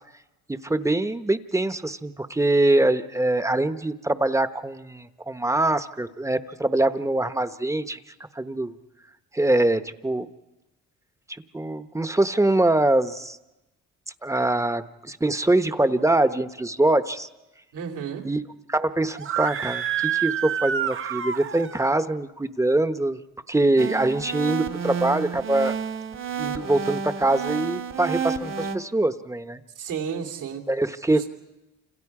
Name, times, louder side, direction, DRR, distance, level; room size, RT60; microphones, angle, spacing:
voice 1, 0.5-8.0 8.3-8.8 9.3-10.3 11.5-13.4 14.2-17.3 18.2-18.4 18.7-23.2 23.5-25.8 26.4-29.6 30.7-31.3, right 2 dB, 10° right, 11 dB, 0.9 m, -23 dB
voice 2, 17.7-18.3 29.7-30.7 31.1-31.3, right 7 dB, 85° right, 2 dB, 3.0 m, -32 dB
Screaming, 19.1-21.9, right 9 dB, 45° right, 0.7 m, -28 dB
sound 1, 23.8-28.8, right 6 dB, 60° right, 1.9 m, -30 dB
29.0 x 27.0 x 4.8 m, 1.0 s
cardioid pair, 90°, 30 cm